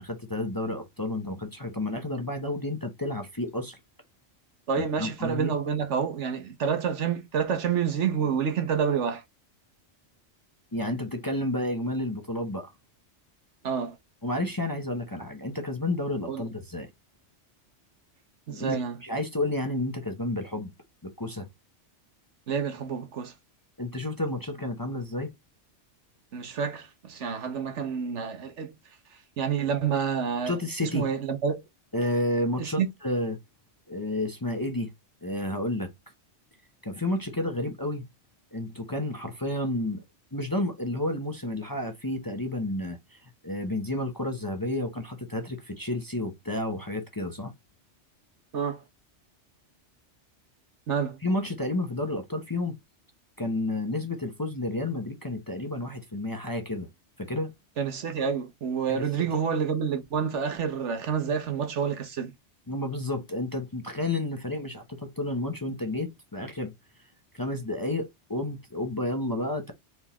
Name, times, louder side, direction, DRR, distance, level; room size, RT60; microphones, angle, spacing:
voice 1, 0.0-3.8 4.8-5.5 10.7-12.7 14.2-16.9 18.5-20.7 21.0-21.5 23.8-25.3 30.4-31.1 31.9-33.4 33.9-34.9 35.2-35.9 36.8-38.0 38.5-40.0 40.3-47.5 51.2-52.8 53.4-56.9 57.2-57.5 58.9-59.3 62.7-66.7 67.3-69.7, left 1 dB, 20° left, 0.8 m, -31 dB
voice 2, 4.7-9.2 13.6-14.0 16.3-16.4 18.5-19.0 22.5-23.3 26.3-28.7 29.1-30.5 30.8-31.6 32.6-32.9 48.5-48.8 50.9-51.2 57.8-62.3, right 7 dB, 75° right, 1.3 m, -28 dB
4.4 x 3.6 x 2.9 m
omnidirectional pair, 1.2 m